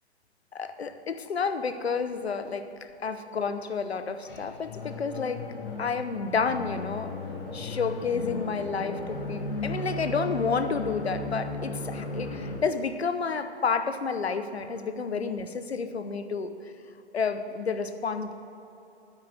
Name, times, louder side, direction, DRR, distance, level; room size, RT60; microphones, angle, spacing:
voice 1, 0.5-2.7 3.0-5.4 5.8-7.1 7.5-16.7 17.1-18.3, left 5 dB, 65° left, 9 dB, 0.9 m, -30 dB
sound 1, 4.2-12.6, left 2 dB, 50° left, 1.7 m, -36 dB
9.4 x 9.1 x 7.7 m, 2.9 s
figure-of-eight pair, 125°, 34 cm